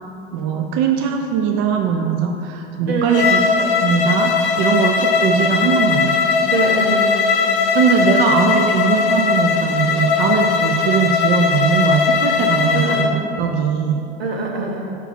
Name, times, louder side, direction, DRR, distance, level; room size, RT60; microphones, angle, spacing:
voice 1, 0.3-6.2 7.7-14.0, right 6 dB, 40° right, 4 dB, 0.5 m, -20 dB
voice 2, 2.9-3.4 5.0-5.1 6.5-7.2 12.7-13.2 14.2-14.9, right 3 dB, 75° right, -1 dB, 1.2 m, -24 dB
Bowed string instrument, 3.1-13.1, left 5 dB, 60° left, 0.7 m, -18 dB
5.8 x 4.6 x 5.4 m, 2.7 s
figure-of-eight pair, 85°, 30 cm